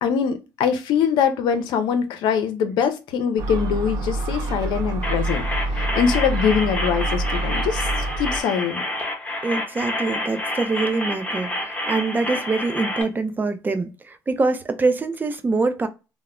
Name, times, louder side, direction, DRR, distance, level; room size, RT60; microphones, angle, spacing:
voice 1, 0.0-7.9 8.2-8.8, left 7 dB, 75° left, 0.5 m, -23 dB
Gull seagull, 3.4-8.4, right 2 dB, 55° right, 0.8 m, -26 dB
sound 1, 5.0-13.0, left 1 dB, 20° left, 0.9 m, -29 dB
voice 2, 9.4-15.9, right 3 dB, 25° right, 0.5 m, -24 dB
2.0 x 2.0 x 3.6 m
supercardioid pair, 80°, 8 cm